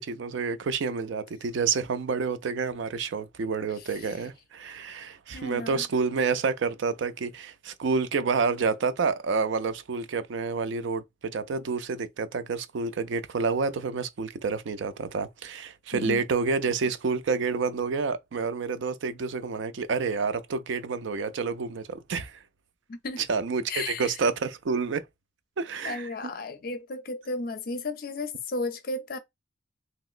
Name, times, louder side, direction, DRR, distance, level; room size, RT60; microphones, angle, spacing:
voice 1, 0.0-22.4 23.3-25.0 25.6-26.1, right 4 dB, 75° right, 0.4 m, -29 dB
voice 2, 5.3-5.8 15.9-16.2 22.9-23.2 23.7-24.2 25.8-29.2, left 3 dB, 50° left, 0.5 m, -34 dB
2.9 x 2.9 x 2.4 m
head